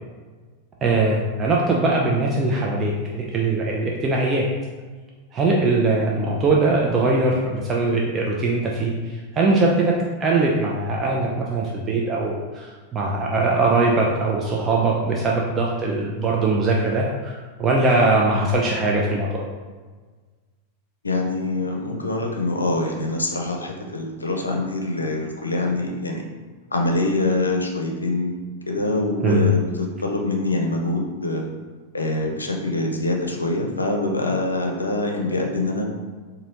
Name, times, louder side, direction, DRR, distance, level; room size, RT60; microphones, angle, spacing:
voice 1, 0.8-4.5 5.3-9.9 10.2-19.4 29.2-29.5, right 3 dB, 25° right, -2 dB, 0.4 m, -21 dB
voice 2, 21.0-26.2 26.7-28.4 28.7-31.4 31.9-35.9, left 2 dB, 80° left, 2 dB, 0.5 m, -24 dB
4.0 x 2.6 x 2.9 m, 1.4 s
figure-of-eight pair, 90°, 0 cm